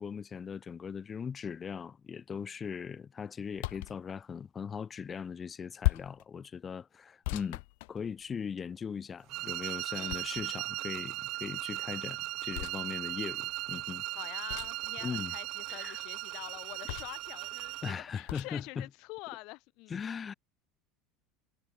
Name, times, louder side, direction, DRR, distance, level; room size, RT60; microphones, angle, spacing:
voice 1, 0.0-7.6 7.9-14.0 15.0-15.3 15.7-16.0 17.8-18.9 19.9-20.3, left 6 dB, 20° left, 2.2 m, -39 dB
sound 1, 3.6-4.0 5.8-6.2 7.2-8.4 10.1-10.7 12.5-12.8 14.5-14.9 16.9-17.3 18.3-18.5, left 26 dB, 80° left, 1.8 m, -35 dB
sound 2, 9.3-18.0, right 19 dB, 50° right, 2.1 m, -38 dB
voice 2, 9.9-10.3 14.1-20.1, left 25 dB, 60° left, 1.7 m, -46 dB
cardioid pair, 160°, 0 cm